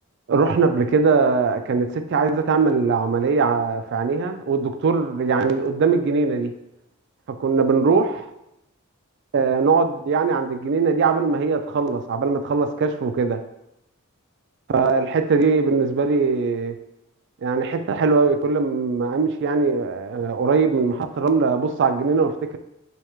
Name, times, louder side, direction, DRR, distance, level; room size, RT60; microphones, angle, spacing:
voice 1, 0.3-6.6 7.4-8.3 9.3-13.4 14.7-16.8 17.4-22.6, right 4 dB, 50° right, 8 dB, 0.3 m, -21 dB
3.4 x 2.4 x 4.4 m, 0.84 s
head